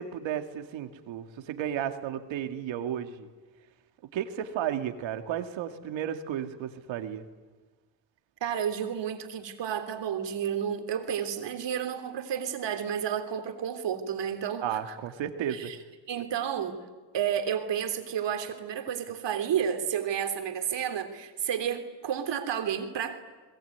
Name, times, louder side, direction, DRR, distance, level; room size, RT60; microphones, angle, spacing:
voice 1, 0.0-3.3 4.1-7.2 14.6-15.7, right 9 dB, 85° right, 7 dB, 2.3 m, -33 dB
voice 2, 8.4-15.0 15.5-15.8 16.1-16.8 17.1-23.2, right 8 dB, 70° right, 7 dB, 3.4 m, -31 dB
28.5 x 21.5 x 9.5 m, 1.3 s
cardioid pair, 80°, 44 cm